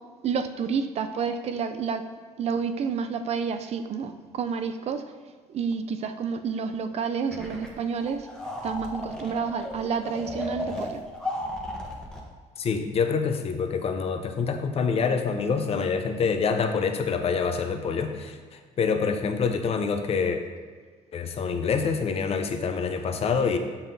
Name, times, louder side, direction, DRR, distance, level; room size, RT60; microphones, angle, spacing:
voice 1, 0.2-2.1 2.4-5.1 5.5-8.3 8.6-11.0, right 6 dB, 50° right, 9 dB, 0.4 m, -29 dB
sound 1, 7.3-7.7 8.0-12.2, left 1 dB, 5° left, 1.0 m, -34 dB
voice 2, 12.6-18.4 18.8-20.4 21.1-23.6, left 5 dB, 45° left, 6 dB, 0.6 m, -26 dB
7.0 x 5.6 x 2.7 m, 1.5 s
cardioid pair, 115°, 14 cm